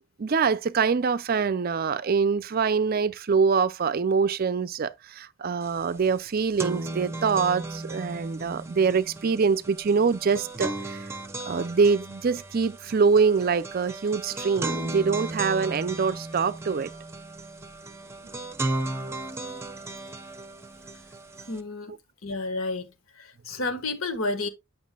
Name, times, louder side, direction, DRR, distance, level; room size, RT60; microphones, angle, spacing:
voice 1, 0.2-11.0 11.5-16.9, right 5 dB, 45° right, 0.4 m, -24 dB
sound 1, 5.7-5.8 6.1-21.6, right 2 dB, 15° right, 0.8 m, -35 dB
voice 2, 21.5-21.9 22.2-22.9 23.2-24.5, left 2 dB, 80° left, 1.5 m, -30 dB
9.3 x 5.9 x 2.3 m
head